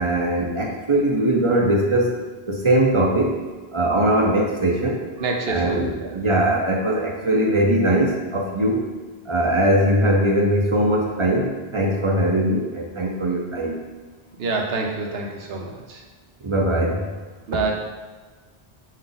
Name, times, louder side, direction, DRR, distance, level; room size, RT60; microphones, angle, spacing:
voice 1, 0.0-3.4 3.7-5.0 5.5-8.9 9.3-13.8 16.4-17.1, right 1 dB, 45° right, 0 dB, 0.4 m, -21 dB
voice 2, 5.2-5.8 14.4-16.0 17.5-17.7, right 3 dB, 70° right, 1 dB, 0.9 m, -26 dB
5.3 x 2.4 x 3.8 m, 1.4 s
omnidirectional pair, 1.1 m